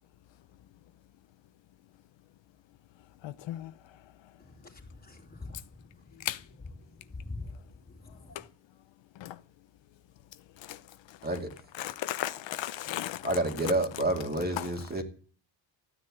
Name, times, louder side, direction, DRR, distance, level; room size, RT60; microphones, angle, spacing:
voice 1, 3.2-3.7 6.2-6.4 8.3-8.4 9.2-9.4 10.6-10.8 11.1-11.2 11.8-13.3 14.6-14.7, left 13 dB, 70° left, 0.8 m, -35 dB
voice 2, 4.4-6.3 6.9-7.5 7.9-8.4, left 3 dB, 20° left, 3.1 m, -45 dB
voice 3, 13.2-15.0, right 1 dB, 20° right, 2.4 m, -29 dB
14.5 x 9.7 x 8.5 m
cardioid pair, 180°, 47 cm